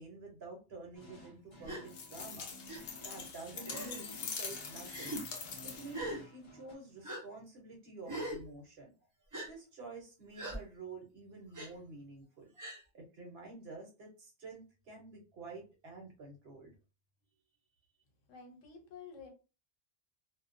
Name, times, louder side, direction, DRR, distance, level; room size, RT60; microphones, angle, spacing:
voice 1, 0.0-2.5 3.0-5.2 5.6-8.9 9.4-12.5 12.9-16.7, right 3 dB, 60° right, 1 dB, 1.0 m, -49 dB
sound 1, 0.9-6.7, left 1 dB, 35° left, 0.9 m, -54 dB
Gasp, 1.6-1.8 2.7-2.8 3.6-4.0 4.9-5.2 5.9-6.2 7.0-7.2 8.1-8.4 9.3-9.5 10.4-10.6 11.5-11.7 12.6-12.8, right 1 dB, 30° right, 0.3 m, -41 dB
sound 2, 1.9-6.1, left 5 dB, 60° left, 0.7 m, -44 dB
voice 2, 18.3-19.3, left 5 dB, 85° left, 3 dB, 1.1 m, -50 dB
2.3 x 2.2 x 2.5 m, 0.32 s
omnidirectional pair, 1.3 m